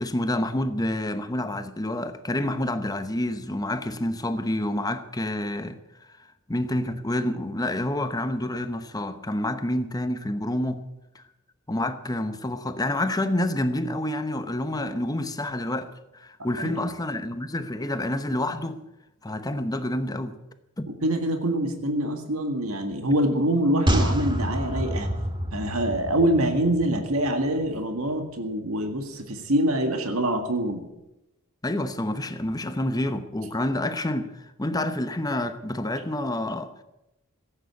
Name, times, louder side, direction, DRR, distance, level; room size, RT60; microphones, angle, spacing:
voice 1, 0.0-5.8 6.1-10.8 11.1-11.2 11.7-18.8 19.2-20.4 20.8-20.9 31.6-36.7, left 1 dB, 15° left, 0.9 m, -28 dB
voice 2, 20.9-25.1 25.5-30.8, right 1 dB, 70° right, 1.9 m, -25 dB
sound 1, 23.9-27.3 27.6-27.7, equal, 20° right, 1.7 m, -27 dB
16.0 x 8.9 x 8.3 m
head